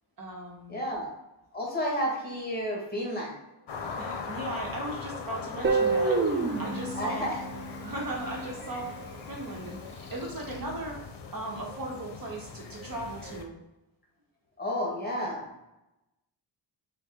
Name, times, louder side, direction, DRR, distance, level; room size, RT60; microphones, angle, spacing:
voice 1, 0.2-0.8 3.8-7.3 7.8-9.0 9.3-11.0 11.3-13.6, right 1 dB, 45° right, -1 dB, 1.0 m, -37 dB
voice 2, 0.7-1.1 1.5-3.4 6.9-7.4 14.6-15.5, equal, 20° left, -3 dB, 1.4 m, -31 dB
sound 1, 3.7-13.4, left 5 dB, 60° left, 0.7 m, -41 dB
Guitar, 5.6-8.6, right 4 dB, 25° right, 0.4 m, -28 dB
4.1 x 2.3 x 3.6 m, 0.93 s
cardioid pair, 70°, 48 cm